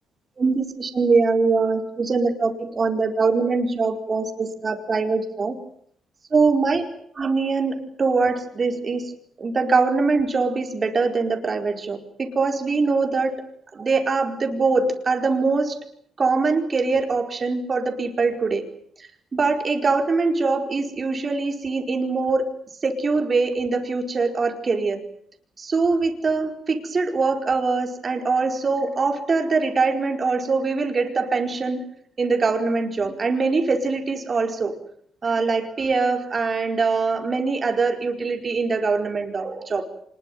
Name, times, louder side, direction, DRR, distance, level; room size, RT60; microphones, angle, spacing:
voice 1, 0.4-5.6 6.3-6.8 7.2-9.1 9.4-13.4 13.7-15.8 16.2-18.7 19.3-22.5 22.8-25.0 25.6-31.8 32.2-34.7 35.2-39.8, right 4 dB, 35° right, 5 dB, 4.8 m, -23 dB
25.5 x 21.5 x 9.3 m, 0.65 s
cardioid pair, 90°, 0 cm